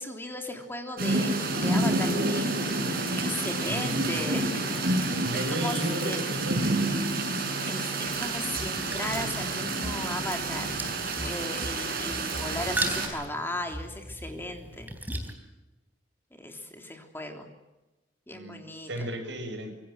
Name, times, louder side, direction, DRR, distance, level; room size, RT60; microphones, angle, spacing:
voice 1, 0.0-2.8 3.2-5.8 6.0-6.3 7.7-10.7 11.2-14.9 16.4-17.5 18.3-19.2, left 1 dB, 10° left, 3 dB, 3.3 m, -37 dB
sound 1, 1.0-13.1, right 2 dB, 55° right, 7.1 m, -29 dB
voice 2, 3.7-4.0 5.2-6.8 18.3-19.8, equal, 70° right, 6 dB, 6.3 m, -34 dB
sound 2, 8.0-15.3, right 1 dB, 10° right, 3.7 m, -38 dB
26.0 x 24.0 x 7.7 m, 1.0 s
head